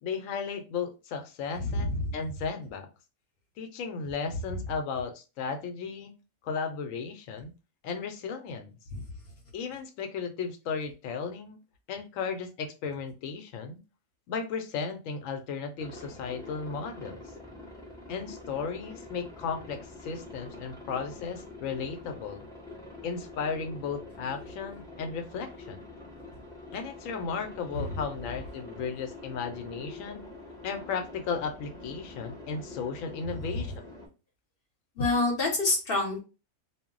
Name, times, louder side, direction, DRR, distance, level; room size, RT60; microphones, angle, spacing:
voice 1, 0.0-2.9 3.6-6.1 6.4-7.5 7.8-8.7 9.5-11.6 11.9-13.8 14.3-17.2 18.1-22.4 23.0-25.8 26.7-30.3 30.6-33.7, left 5 dB, 75° left, 6 dB, 1.0 m, -35 dB
voice 2, 1.6-2.1 8.9-9.0 27.7-27.8 35.0-36.2, left 2 dB, 50° left, 0 dB, 0.8 m, -27 dB
Aircraft, 15.8-34.1, left 2 dB, 5° left, 0.4 m, -46 dB
2.3 x 2.0 x 3.6 m, 0.31 s
omnidirectional pair, 1.4 m